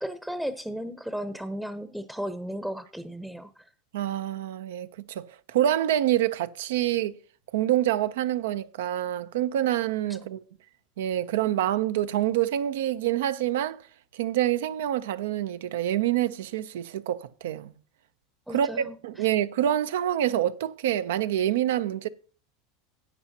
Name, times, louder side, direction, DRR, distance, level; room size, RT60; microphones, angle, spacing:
voice 1, 0.0-3.7 10.2-10.3 18.5-19.3, equal, 5° right, 0.7 m, -35 dB
voice 2, 3.9-7.2 7.5-10.4 11.0-13.8 14.1-17.7 18.5-22.1, right 12 dB, 80° right, 0.5 m, -26 dB
13.0 x 8.7 x 2.8 m
hypercardioid pair, 95°, 0 cm